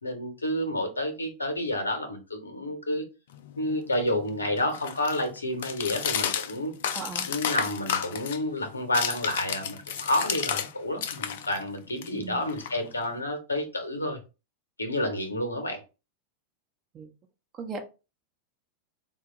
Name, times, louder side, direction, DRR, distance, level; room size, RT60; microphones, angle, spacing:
voice 1, 0.0-3.0 3.6-6.7 7.3-14.2 14.8-15.8, left 1 dB, 80° left, 6 dB, 0.7 m, -30 dB
sound 1, 3.3-10.7 11.0-13.2, left 8 dB, 55° left, 0.3 m, -33 dB
voice 2, 6.9-7.3 12.1-12.6 16.9-17.1 17.5-17.8, right 4 dB, 30° right, 4 dB, 0.7 m, -38 dB
4.2 x 2.2 x 2.9 m, 0.30 s
figure-of-eight pair, 90°, 0 cm